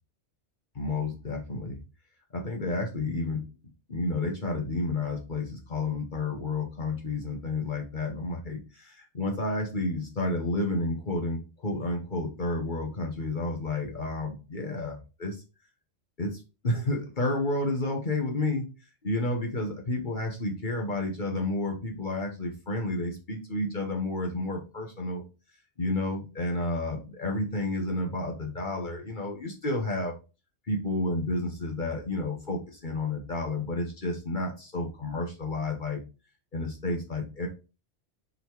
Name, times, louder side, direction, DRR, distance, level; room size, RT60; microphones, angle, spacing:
voice 1, 0.7-1.8 2.3-3.4 3.9-15.4 16.2-18.7 19.0-25.2 25.8-30.1 30.7-36.0 36.5-37.5, left 2 dB, 45° left, 1 dB, 1.4 m, -31 dB
5.2 x 4.1 x 4.5 m, 0.31 s
omnidirectional pair, 1.2 m